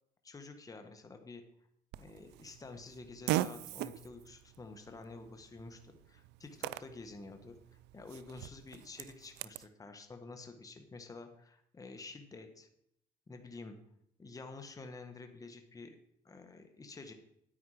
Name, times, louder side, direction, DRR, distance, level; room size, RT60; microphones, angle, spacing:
voice 1, 0.2-1.4 2.0-7.5 7.9-12.7 13.3-13.8 14.2-16.0 16.2-17.1, left 3 dB, 20° left, 6 dB, 1.3 m, -49 dB
Fart, 1.9-9.7, right 15 dB, 85° right, 0.4 m, -41 dB
9.9 x 9.2 x 4.9 m, 0.74 s
cardioid pair, 110°, 17 cm